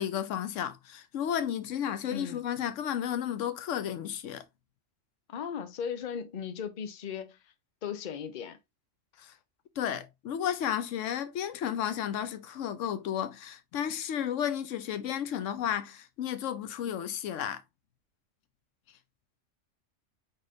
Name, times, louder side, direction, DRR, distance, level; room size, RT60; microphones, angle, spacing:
voice 1, 0.0-4.4 9.2-9.3 9.8-17.6, left 9 dB, 90° left, 1.0 m, -33 dB
voice 2, 2.1-2.4 5.3-7.4 7.8-8.6, left 7 dB, 45° left, 0.7 m, -37 dB
4.8 x 4.2 x 2.5 m
omnidirectional pair, 1.3 m